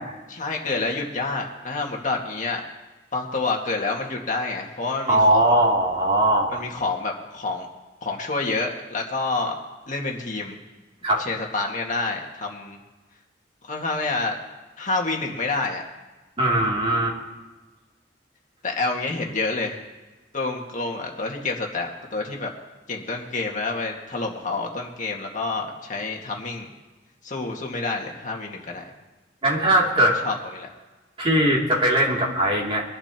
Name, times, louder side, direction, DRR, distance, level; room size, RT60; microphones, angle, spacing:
voice 1, 0.3-2.6 3.1-5.5 6.5-7.7 8.0-9.6 9.9-10.6 11.2-12.8 13.6-14.4 14.8-15.8 18.6-19.8 20.3-22.5 22.9-26.7 27.2-28.8 30.0-30.7, left 3 dB, 45° left, 0 dB, 1.9 m, -28 dB
voice 2, 5.1-6.6 11.0-11.2 16.4-17.1 29.4-30.2 31.2-32.8, right 1 dB, 30° right, -3 dB, 2.8 m, -20 dB
23.5 x 11.5 x 3.0 m, 1.2 s
head